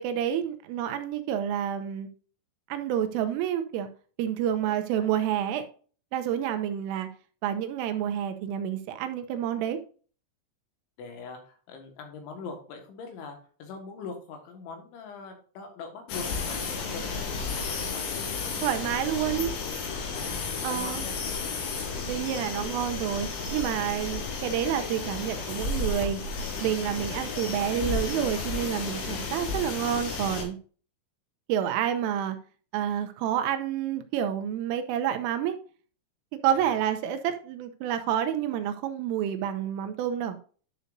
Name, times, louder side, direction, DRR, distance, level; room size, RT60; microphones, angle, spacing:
voice 1, 0.0-2.1 2.7-3.9 4.2-5.6 6.1-7.1 7.4-9.8 18.6-19.5 20.6-21.0 22.1-26.2 26.6-30.6 31.5-32.4 32.7-35.6 36.4-40.4, right 10 dB, 80° right, 8 dB, 3.2 m, -29 dB
voice 2, 11.0-16.6 16.9-18.0 20.1-21.2 36.5-36.8, left 4 dB, 70° left, 3 dB, 3.8 m, -42 dB
sound 1, 16.1-30.4, left 4 dB, 90° left, 4.7 m, -33 dB
11.0 x 6.7 x 2.6 m, 0.40 s
omnidirectional pair, 6.0 m